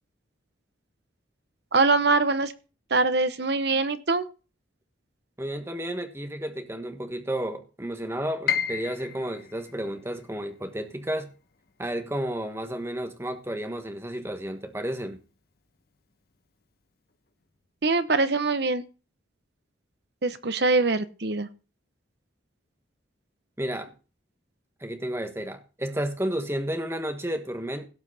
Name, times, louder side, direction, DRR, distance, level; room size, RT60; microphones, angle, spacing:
voice 1, 1.7-2.5 2.9-4.2 17.8-18.8 20.2-21.5, right 3 dB, 60° right, 1.0 m, -23 dB
voice 2, 5.4-11.3 11.8-15.2 23.6-23.9 24.8-27.9, right 1 dB, 15° right, 1.3 m, -32 dB
Piano, 8.5-14.4 14.7-15.9 16.3-16.4 17.1-17.4, left 8 dB, 50° left, 0.9 m, -36 dB
17.0 x 5.8 x 4.1 m
head